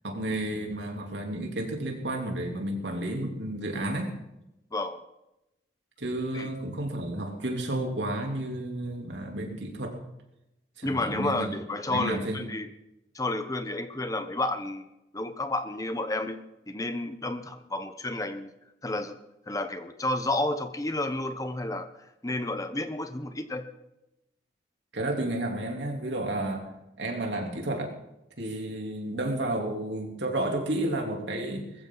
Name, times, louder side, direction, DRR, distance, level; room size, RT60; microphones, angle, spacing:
voice 1, 0.0-4.1 6.0-10.0 10.8-11.5 11.9-12.4 24.9-26.7 27.0-28.0 28.4-31.9, right 1 dB, 75° right, 2 dB, 3.4 m, -31 dB
voice 2, 10.8-12.7 13.1-14.8 15.1-16.4 16.7-18.5 18.8-19.2 19.5-21.9 22.2-23.7, left 2 dB, 20° left, 9 dB, 1.0 m, -31 dB
21.0 x 15.0 x 4.0 m, 0.88 s
head